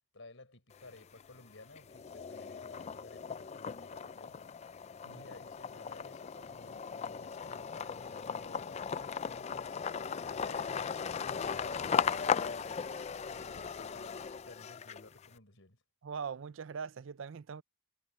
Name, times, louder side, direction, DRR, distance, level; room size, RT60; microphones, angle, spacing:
voice 1, 0.1-4.5 5.0-15.8, left 2 dB, 65° left, 4.9 m, -55 dB
sound 1, 0.7-1.4 1.8-15.3, left 6 dB, 30° left, 0.3 m, -37 dB
voice 2, 16.0-17.6, right 6 dB, 65° right, 0.5 m, -41 dB
head